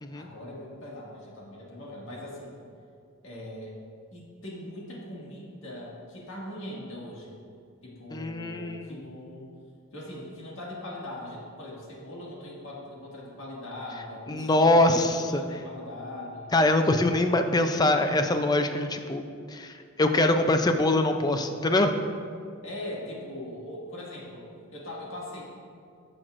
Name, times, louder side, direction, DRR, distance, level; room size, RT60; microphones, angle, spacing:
voice 1, 0.1-2.6 3.2-3.8 4.1-7.3 7.8-9.5 9.9-16.5 22.6-25.5, left 1 dB, 60° left, -4 dB, 2.0 m, -40 dB
voice 2, 8.1-9.0 14.3-15.4 16.5-19.2 19.5-22.0, left 2 dB, 20° left, 6 dB, 0.4 m, -23 dB
15.0 x 6.0 x 2.5 m, 2.3 s
head